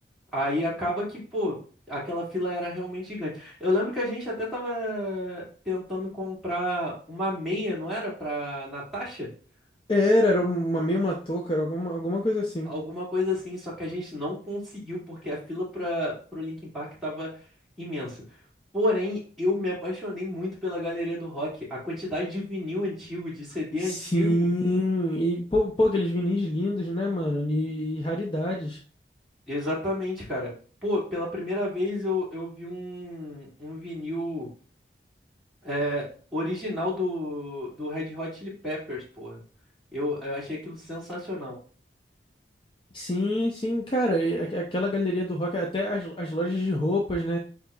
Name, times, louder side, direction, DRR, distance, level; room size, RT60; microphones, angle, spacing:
voice 1, 0.3-1.6 1.9-9.3 12.7-17.3 17.8-18.2 18.7-24.5 29.5-30.5 30.8-34.5 35.6-39.4 39.9-41.6, left 1 dB, ahead, -7 dB, 2.3 m, -31 dB
voice 2, 9.9-12.7 23.8-28.8 42.9-47.4, left 1 dB, 30° left, 0 dB, 0.6 m, -26 dB
8.1 x 2.8 x 2.3 m, 0.40 s
head